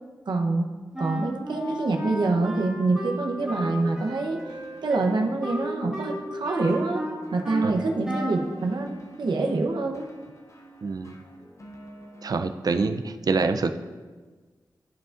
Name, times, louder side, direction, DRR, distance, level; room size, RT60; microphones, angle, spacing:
voice 1, 0.3-0.7 1.0-4.4 4.8-7.0 7.3-10.1, right 3 dB, 85° right, 2 dB, 0.9 m, -26 dB
Wind instrument woodwind instrument, 0.9-7.7 8.0-8.5, right 1 dB, 10° right, 2.0 m, -34 dB
sound 1, 3.4-12.3, right 1 dB, 45° left, 0.7 m, -50 dB
voice 2, 10.8-11.2 12.2-13.8, right 4 dB, 60° right, 8 dB, 0.4 m, -26 dB
13.5 x 5.1 x 2.5 m, 1.4 s
wide cardioid pair, 115°, 7 cm